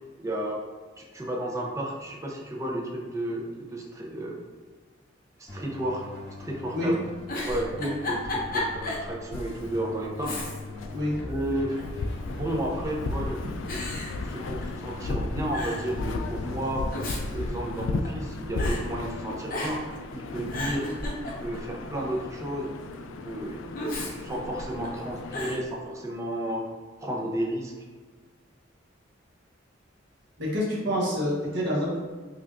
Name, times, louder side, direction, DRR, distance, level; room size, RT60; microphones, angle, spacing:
voice 1, 0.2-0.6 1.0-4.4 5.4-6.0 6.4-7.0 7.4-7.7 8.1-10.4 11.2-11.8 12.2-13.4 14.2-16.9 17.3-19.8 20.1-20.9 21.2-22.8 23.2-26.6 27.0-27.7, right 1 dB, 15° right, -2 dB, 0.5 m, -32 dB
Keyboard (musical), 5.5-17.5, left 2 dB, 20° left, 1.4 m, -42 dB
Giggle, 7.3-9.1 9.5-9.6 10.2-10.9 11.2-12.0 12.8-13.2 13.7-14.9 15.2-15.3 15.5-15.9 16.7-18.2 18.6-18.8 19.5-20.0 20.3-21.7 23.7-24.9 25.3-25.6, left 2 dB, 50° left, 0.7 m, -34 dB
sound 1, 9.3-25.6, left 2 dB, 85° left, 0.3 m, -35 dB
voice 2, 30.4-32.0, left 1 dB, 65° right, -6 dB, 1.0 m, -27 dB
5.6 x 2.5 x 2.4 m, 1.4 s
head